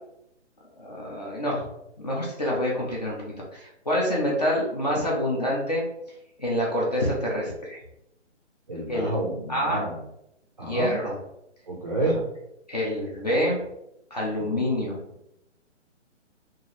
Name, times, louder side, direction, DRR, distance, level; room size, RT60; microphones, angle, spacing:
voice 1, 0.8-1.7 2.0-5.8 6.4-7.8 8.9-9.1 9.5-9.8 10.6-11.2 12.0-12.2 12.7-13.6 14.1-15.0, equal, 35° left, -4 dB, 0.5 m, -27 dB
voice 2, 8.7-9.9 10.6-10.9 11.7-12.2 14.5-14.6, right 1 dB, 35° right, -3 dB, 0.4 m, -28 dB
2.8 x 2.4 x 2.8 m, 0.82 s
hypercardioid pair, 165°, 36 cm